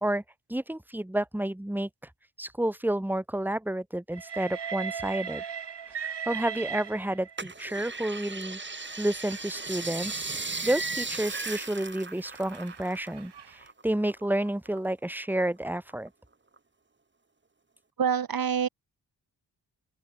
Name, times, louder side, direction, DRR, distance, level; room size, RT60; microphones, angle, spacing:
voice 1, 0.5-1.9 2.4-5.4 6.0-8.6 9.0-10.2 10.6-16.1, right 1 dB, 5° right, 1.7 m, -30 dB
Train, 4.1-7.5 8.4-13.6, right 7 dB, 75° right, 5.4 m, -40 dB
sound 1, 7.4-13.2 13.5-14.8 15.2-16.1 16.6-16.7, right 3 dB, 25° right, 2.0 m, -36 dB
voice 2, 18.0-18.7, right 7 dB, 55° right, 1.2 m, -26 dB
open air
cardioid pair, 80°, 42 cm